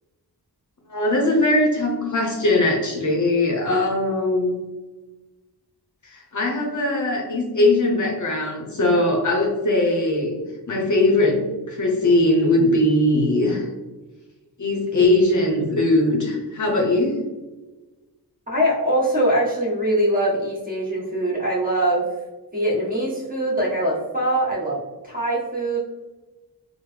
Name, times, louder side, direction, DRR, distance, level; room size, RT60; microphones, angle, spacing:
voice 1, 0.9-4.6 6.0-10.4 10.7-13.7 14.6-17.2, left 2 dB, 50° left, 0 dB, 0.7 m, -20 dB
voice 2, 18.5-22.1 22.5-25.8, right 1 dB, 20° right, -5 dB, 1.3 m, -22 dB
3.5 x 2.0 x 3.2 m, 1.2 s
wide cardioid pair, 80°, 39 cm